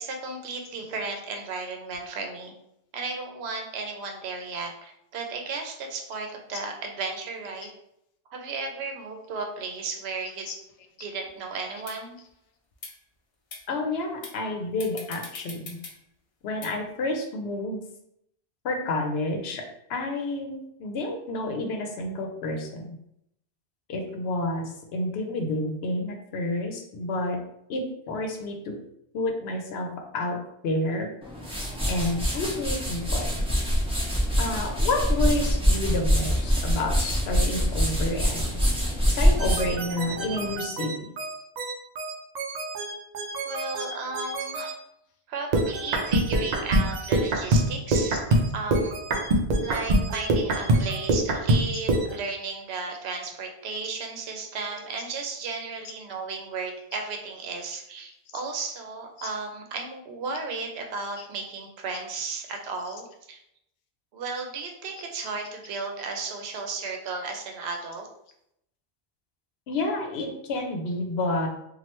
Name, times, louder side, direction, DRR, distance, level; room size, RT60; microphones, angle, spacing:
voice 1, 0.0-2.5 2.9-7.7 8.3-10.4 11.0-12.2 43.5-44.8 45.3-48.3 48.5-49.0 49.6-63.4 64.1-68.1, right 4 dB, 75° right, 3 dB, 0.9 m, -34 dB
sound 1, 11.3-11.4 11.9-12.0 12.7-12.9 13.5-13.6 14.2-14.4 14.8-15.9 16.6-16.7, left 4 dB, 50° left, 0.4 m, -40 dB
voice 2, 13.7-15.8 16.4-17.8 18.6-23.0 23.9-27.4 27.7-28.8 29.1-29.9 30.1-30.4 30.6-31.1 31.9-33.3 34.4-38.6 39.1-40.9 46.3-46.6 47.0-47.1 48.1-48.2 50.8-50.9 52.9-53.0 56.9-57.0 59.2-59.3 61.2-61.3 62.8-62.9 65.2-65.3 66.4-66.5 66.8-66.9 69.7-71.5, left 2 dB, 75° left, 4 dB, 0.8 m, -30 dB
sound 2, 31.2-40.6, equal, 5° right, 0.6 m, -25 dB
sound 3, 39.4-44.7 45.5-52.1, right 1 dB, 55° right, 0.5 m, -25 dB
3.1 x 2.3 x 2.9 m, 0.76 s
omnidirectional pair, 1.1 m